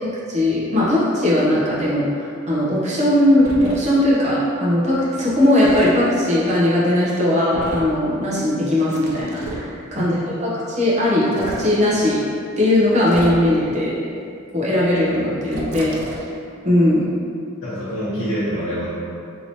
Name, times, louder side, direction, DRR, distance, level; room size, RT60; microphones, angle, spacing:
voice 1, 0.0-10.2 10.7-12.2 12.6-13.9 14.5-16.0 16.6-17.0, left 1 dB, 35° right, -8 dB, 0.8 m, -18 dB
sound 1, 3.4-3.8 5.6-5.9 7.5-8.0 8.9-9.7 11.2-11.7 13.0-13.6 15.5-16.3, right 1 dB, 85° right, 0.5 m, -32 dB
voice 2, 17.6-18.9, equal, 90° left, -13 dB, 1.0 m, -25 dB
2.9 x 2.9 x 2.8 m, 2.4 s
head